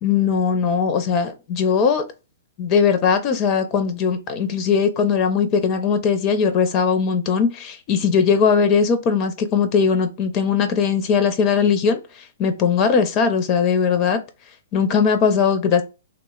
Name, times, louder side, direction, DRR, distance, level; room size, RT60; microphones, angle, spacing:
voice 1, 0.0-2.0 2.6-12.0 12.4-14.2 14.7-15.8, left 6 dB, 35° left, 0.4 m, -19 dB
3.1 x 2.0 x 2.2 m
hypercardioid pair, 125°, 0 cm